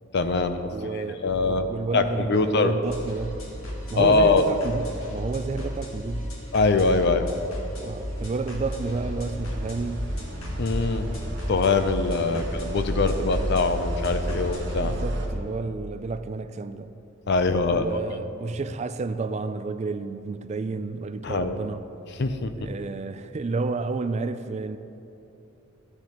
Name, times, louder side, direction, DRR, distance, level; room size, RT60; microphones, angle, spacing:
voice 1, 0.1-0.7 1.2-1.7 1.9-2.7 3.9-4.4 6.5-7.3 10.6-11.1 11.5-15.0 17.3-17.9 21.2-21.6 22.2-22.7, left 3 dB, 55° left, 0.6 m, -23 dB
voice 2, 0.7-3.4 3.9-6.3 7.8-10.1 12.2-12.5 14.3-14.5 14.8-16.9 17.7-21.8 22.6-24.8, right 3 dB, 30° right, 0.3 m, -31 dB
sound 1, 2.8-14.8, equal, 70° left, 1.7 m, -35 dB
sound 2, 7.2-15.3, equal, 55° right, 1.6 m, -33 dB
14.5 x 9.8 x 3.0 m
head